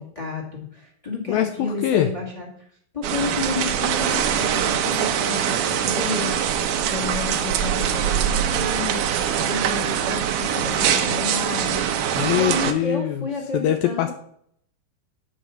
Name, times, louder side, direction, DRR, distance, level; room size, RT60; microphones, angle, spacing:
voice 1, 0.0-2.5 2.9-9.0 9.4-11.8 12.3-14.1, left 3 dB, 20° left, -1 dB, 0.8 m, -31 dB
voice 2, 1.3-2.1 12.2-13.3 13.5-14.1, left 11 dB, 80° left, 8 dB, 2.2 m, -23 dB
sound 1, 3.0-12.7, right 9 dB, 80° right, 1.8 m, -23 dB
9.0 x 5.2 x 7.0 m, 0.65 s
omnidirectional pair, 4.7 m